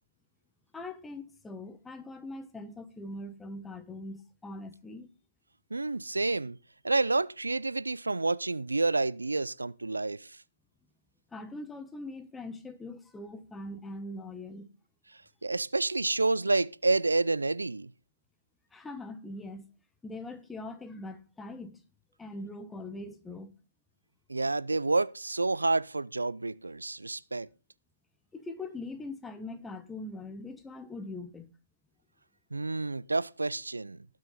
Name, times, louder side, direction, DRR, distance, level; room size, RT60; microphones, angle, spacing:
voice 1, 0.7-5.1 11.3-14.7 18.7-19.6 20.0-21.8 22.2-23.5 28.3-31.5, left 2 dB, 5° left, 1.2 m, -42 dB
voice 2, 5.7-6.6 6.8-10.4 15.4-17.9 24.3-27.5 32.5-34.1, right 3 dB, 85° right, 0.5 m, -29 dB
19.0 x 6.3 x 4.1 m
figure-of-eight pair, 135°, 0 cm